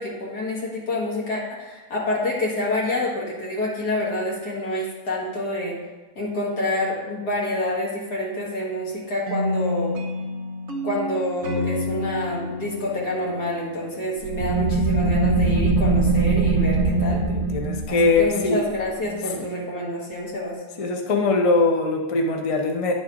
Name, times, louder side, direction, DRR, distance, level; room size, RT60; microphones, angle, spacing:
voice 1, 0.0-5.8 6.2-9.9 10.8-17.3 17.9-20.6, left 1 dB, 70° left, -4 dB, 2.3 m, -27 dB
sound 1, 9.3-14.4, left 1 dB, 55° right, 1.1 m, -30 dB
sound 2, 14.2-19.6, right 3 dB, 75° right, 1.2 m, -22 dB
voice 2, 17.3-18.6 20.8-22.9, left 3 dB, 40° left, 2 dB, 0.5 m, -21 dB
9.8 x 4.1 x 5.0 m, 1.2 s
omnidirectional pair, 1.8 m